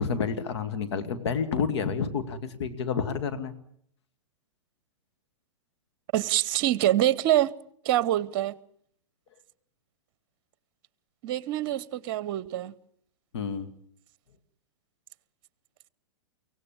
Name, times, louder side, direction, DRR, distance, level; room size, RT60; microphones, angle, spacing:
voice 1, 0.0-3.5 13.3-13.7, left 6 dB, 60° left, 2.0 m, -29 dB
voice 2, 6.1-7.5 7.8-8.6 11.2-12.7, right 13 dB, 45° right, 0.9 m, -25 dB
23.5 x 17.5 x 7.3 m
figure-of-eight pair, 105°, 16 cm